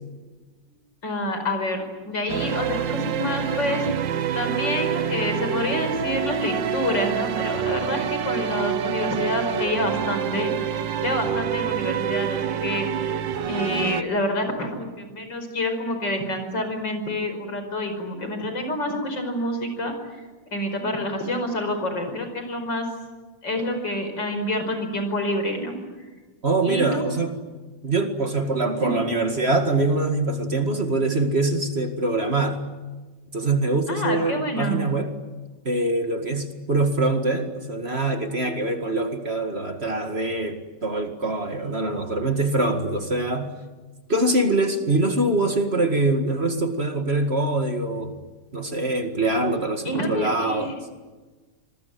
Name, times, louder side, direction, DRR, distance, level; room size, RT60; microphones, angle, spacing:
voice 1, 1.0-3.9 4.3-12.9 13.5-19.9 20.5-22.9 23.4-25.7 26.6-27.0 28.8-29.0 33.9-34.8 49.9-50.7, left 1 dB, 75° left, 6 dB, 5.7 m, -27 dB
sound 1, 2.3-14.0, right 9 dB, 85° right, 1.7 m, -27 dB
voice 2, 26.4-27.4 27.8-32.6 33.3-35.1 35.7-43.5 44.1-48.2 48.5-50.7, right 2 dB, 35° right, 6 dB, 2.2 m, -24 dB
26.0 x 22.0 x 9.4 m, 1.3 s
omnidirectional pair, 2.0 m